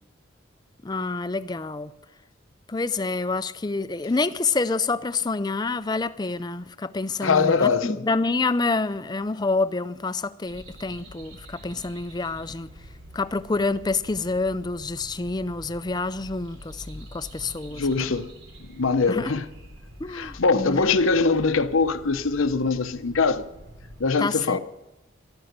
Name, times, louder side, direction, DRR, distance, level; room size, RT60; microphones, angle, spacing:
voice 1, 0.8-1.9 2.7-12.7 13.1-18.1 19.1-19.3 20.0-20.9 24.2-24.6, left 3 dB, 20° left, 0.4 m, -27 dB
voice 2, 7.2-8.0 17.7-18.3 18.6-19.4 20.1-23.4 24.0-24.6, left 4 dB, 85° left, 0.8 m, -22 dB
sound 1, 10.5-24.1, equal, 75° right, 3.4 m, -46 dB
13.5 x 12.5 x 6.7 m
head